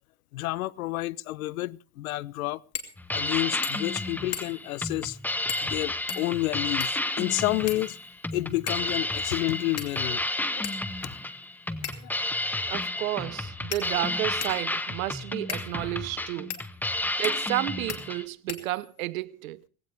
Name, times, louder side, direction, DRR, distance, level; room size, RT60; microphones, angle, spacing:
voice 1, 0.3-2.6 3.1-5.2 5.6-8.0 8.3-10.2 10.5-10.7 11.0-11.2 12.0-12.1, left 18 dB, 90° left, 0.6 m, -30 dB
sound 1, 2.7-3.0 3.3-3.4 3.6-4.0 4.3-4.7 5.5-5.7 6.1-7.1 7.7-8.2 8.7-8.9 9.8-10.2 10.6-10.8 11.8-12.2 13.0-13.1 13.7-14.6 15.5-15.7 16.5-16.6 17.2-17.6 17.9-18.0 18.5-19.0, left 9 dB, 35° left, 2.6 m, -37 dB
sound 2, 3.0-18.2, left 2 dB, 5° left, 1.1 m, -31 dB
voice 2, 12.7-16.6 17.2-19.6, right 16 dB, 80° right, 0.9 m, -32 dB
18.5 x 16.0 x 3.4 m
hypercardioid pair, 100°, 41 cm